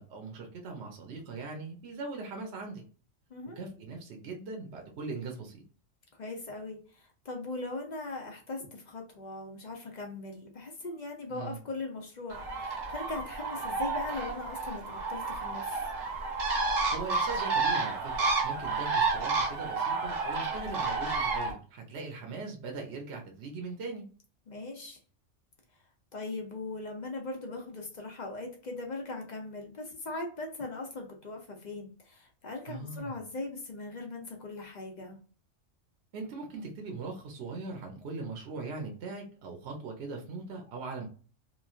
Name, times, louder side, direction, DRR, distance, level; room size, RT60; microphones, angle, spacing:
voice 1, 0.0-2.8 3.6-5.6 11.3-11.6 16.9-18.1 18.4-24.0 32.7-33.1 36.1-41.1, right 3 dB, 60° right, 2 dB, 1.0 m, -40 dB
voice 2, 6.1-15.8 24.5-25.0 26.1-35.2, left 2 dB, 45° left, 1 dB, 0.6 m, -40 dB
Bird, 12.3-21.5, right 4 dB, 85° right, 1.3 m, -31 dB
3.0 x 2.4 x 2.4 m, 0.39 s
omnidirectional pair, 1.3 m